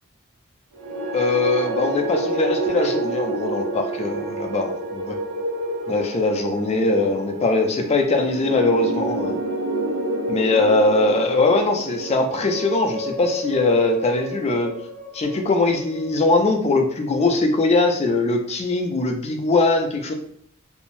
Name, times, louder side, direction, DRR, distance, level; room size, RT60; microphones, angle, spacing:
sound 1, 0.7-17.0, right 1 dB, 80° right, 0.5 m, -29 dB
voice 1, 1.1-5.2 5.9-9.4 10.3-14.7 15.1-20.1, left 3 dB, 30° left, 3 dB, 0.4 m, -21 dB
2.6 x 2.0 x 3.0 m, 0.67 s
head